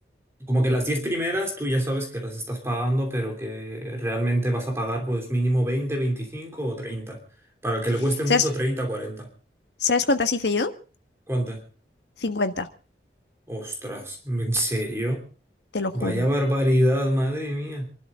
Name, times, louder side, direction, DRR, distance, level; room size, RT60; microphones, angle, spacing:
voice 1, 0.4-7.2 7.6-9.3 11.3-11.6 13.5-15.2 15.9-17.9, equal, 15° right, 2 dB, 3.0 m, -26 dB
voice 2, 9.8-10.7 12.2-12.7 15.7-16.2, left 4 dB, 80° left, 8 dB, 1.5 m, -23 dB
27.0 x 12.5 x 3.7 m, 0.38 s
head